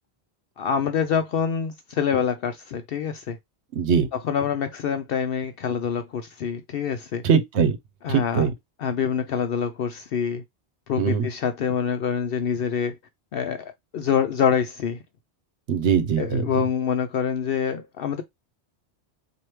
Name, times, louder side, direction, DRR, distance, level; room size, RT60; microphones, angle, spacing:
voice 1, 0.6-3.4 4.1-7.3 8.0-8.5 8.8-10.4 10.9-13.0 13.3-15.0 16.2-18.2, left 7 dB, 65° left, 0.7 m, -26 dB
voice 2, 3.8-4.1 7.2-7.8 8.1-8.5 11.0-11.3 15.7-16.4, right 6 dB, 85° right, 1.1 m, -21 dB
4.5 x 2.7 x 3.1 m
omnidirectional pair, 1.1 m